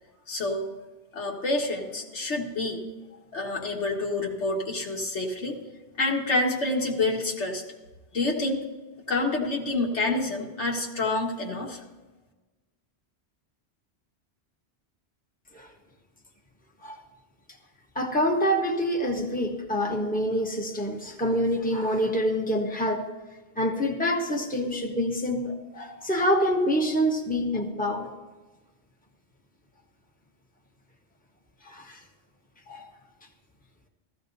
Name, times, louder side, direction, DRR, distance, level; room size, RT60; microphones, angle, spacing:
voice 1, 0.3-0.7 1.1-2.8 3.3-5.6 6.0-7.6 8.1-8.6 9.1-11.8, left 2 dB, 90° left, 0 dB, 1.9 m, -28 dB
voice 2, 17.9-23.1 23.6-28.1 31.6-32.0 32.7-32.8, equal, 10° left, 1 dB, 1.1 m, -26 dB
15.0 x 14.5 x 2.7 m, 1.2 s
omnidirectional pair, 1.1 m